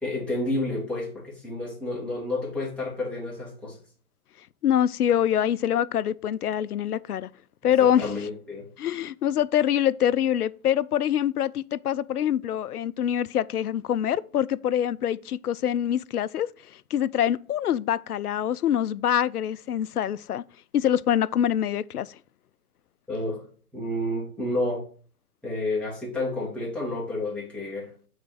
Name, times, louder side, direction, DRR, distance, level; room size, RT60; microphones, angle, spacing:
voice 1, 0.0-3.8 7.8-8.7 23.1-23.4 23.7-24.8 25.4-27.9, left 2 dB, ahead, 2.2 m, -30 dB
voice 2, 4.6-7.3 7.6-8.1 8.8-16.5 16.9-20.4 20.7-22.2, left 10 dB, 85° left, 0.5 m, -25 dB
6.7 x 4.0 x 6.1 m
hypercardioid pair, 130°, 44 cm